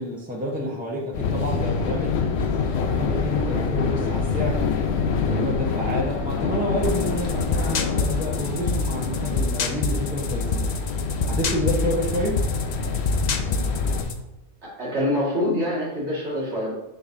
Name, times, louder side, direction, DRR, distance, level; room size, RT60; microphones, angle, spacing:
voice 1, 0.0-2.2 2.9-4.6 5.3-10.8 11.2-12.5, equal, 10° right, -3 dB, 0.8 m, -29 dB
sound 1, 1.1-14.0, left 5 dB, 75° left, 0.9 m, -26 dB
sound 2, 6.8-14.2, left 3 dB, 50° left, 0.6 m, -27 dB
voice 2, 14.8-16.7, left 1 dB, 85° right, -5 dB, 2.4 m, -25 dB
6.8 x 6.0 x 2.7 m, 1.0 s
omnidirectional pair, 1.1 m